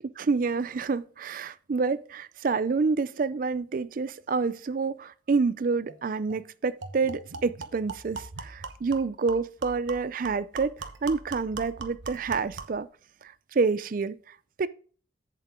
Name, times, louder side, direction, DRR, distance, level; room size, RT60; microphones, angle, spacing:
voice 1, 0.2-12.9 13.2-14.7, right 4 dB, 50° right, 0.4 m, -28 dB
sound 1, 5.9-6.0 6.3-6.4 6.8-12.8, right 4 dB, 90° right, 1.0 m, -41 dB
8.2 x 7.6 x 3.6 m
head